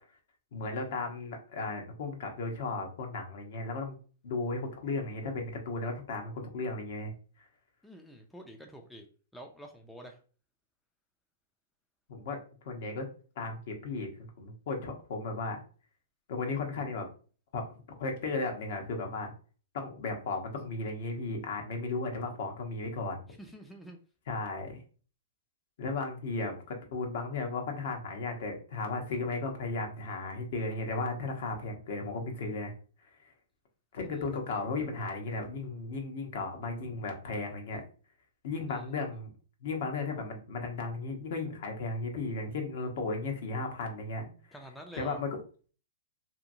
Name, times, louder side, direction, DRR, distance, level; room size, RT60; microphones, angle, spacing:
voice 1, 0.5-4.0 4.2-7.1 12.1-12.4 12.6-13.1 13.4-14.1 14.4-15.6 16.3-17.1 17.5-19.3 19.7-23.2 24.3-24.8 25.8-32.7 33.9-37.8 38.4-39.3 39.6-44.3 45.0-45.3, left 3 dB, 60° left, 3 dB, 0.8 m, -35 dB
voice 2, 7.8-9.1 9.3-10.2 23.3-24.0 34.1-34.2 38.7-38.9 44.5-45.2, right 1 dB, 5° left, 3 dB, 0.4 m, -48 dB
2.8 x 2.6 x 2.5 m, 0.39 s
hypercardioid pair, 130°, 0 cm